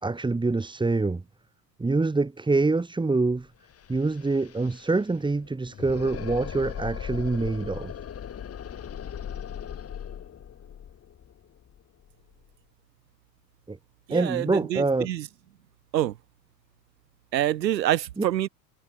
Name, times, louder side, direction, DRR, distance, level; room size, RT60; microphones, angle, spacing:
voice 1, 0.0-1.2 1.8-3.5 3.9-7.9 13.7-13.8 14.1-15.1 18.2-18.3, right 3 dB, 10° right, 1.9 m, -25 dB
sound 1, 3.4-3.5 3.7-12.5, left 8 dB, 30° left, 3.4 m, -39 dB
voice 2, 14.1-15.3 15.9-16.1 17.3-18.5, right 12 dB, 85° right, 0.9 m, -26 dB
hypercardioid pair, 85°, 49 cm